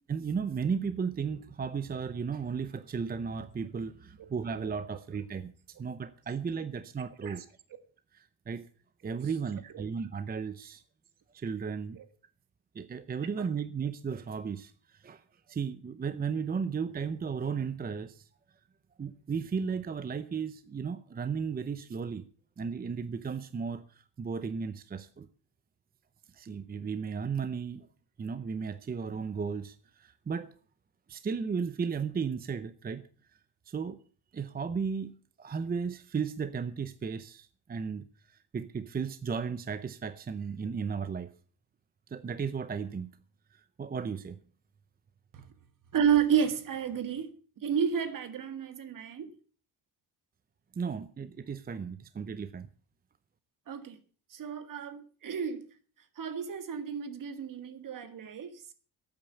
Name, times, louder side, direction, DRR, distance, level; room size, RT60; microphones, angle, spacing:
voice 1, 0.1-5.5 5.8-7.4 8.1-8.6 9.0-10.8 11.3-12.0 12.7-15.2 15.5-18.3 19.0-22.2 22.6-25.3 26.3-27.9 28.2-30.5 31.1-33.0 33.7-34.0 34.3-35.1 35.4-41.3 42.1-43.1 43.5-44.4 50.7-52.7, right 6 dB, 25° right, 0.6 m, -35 dB
voice 2, 45.9-47.3 47.6-49.3 53.7-54.0 54.3-55.7 56.2-58.6, right 8 dB, 55° right, 1.9 m, -31 dB
12.5 x 8.9 x 8.2 m
wide cardioid pair, 165°, 38 cm